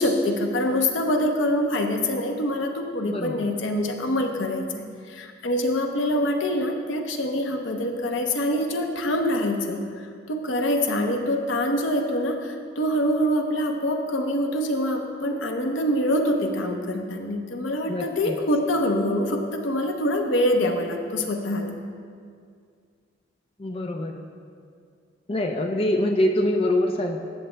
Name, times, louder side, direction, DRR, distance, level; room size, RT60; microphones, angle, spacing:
voice 1, 0.0-21.8, left 1 dB, 85° left, 3 dB, 0.8 m, -25 dB
voice 2, 3.1-3.5 17.9-18.3 23.6-24.2 25.3-27.2, left 1 dB, 30° left, 3 dB, 0.5 m, -24 dB
14.0 x 8.1 x 2.2 m, 2.2 s
head